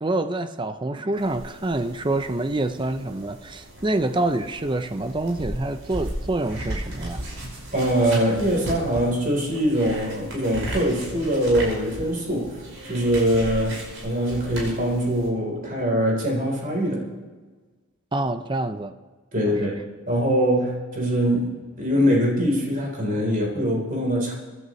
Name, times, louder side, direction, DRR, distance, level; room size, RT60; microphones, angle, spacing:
voice 1, 0.0-7.2 18.1-18.9 19.5-19.6, right 2 dB, 20° right, 0.6 m, -26 dB
sound 1, 1.2-15.3, right 1 dB, 65° right, 5.4 m, -36 dB
voice 2, 7.7-17.1 19.3-19.8 20.1-24.3, equal, 40° right, 3.9 m, -23 dB
23.5 x 11.0 x 3.2 m
head